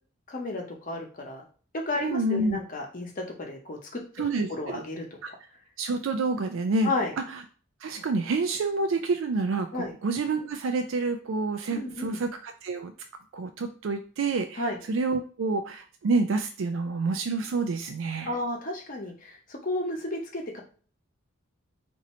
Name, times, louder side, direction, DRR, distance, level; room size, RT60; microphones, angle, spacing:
voice 1, 0.3-1.5 1.9-4.0 4.5-5.0 6.8-7.1 9.7-9.9 11.7-12.2 14.6-14.8 18.3-20.6, left 2 dB, 40° left, 1 dB, 0.9 m, -32 dB
voice 2, 2.0-2.6 4.2-4.8 5.2-5.3 5.8-6.9 7.3-7.4 7.8-12.9 13.3-14.6 14.9-18.3, right 3 dB, 65° right, 6 dB, 0.4 m, -28 dB
2.7 x 2.6 x 4.2 m, 0.40 s
head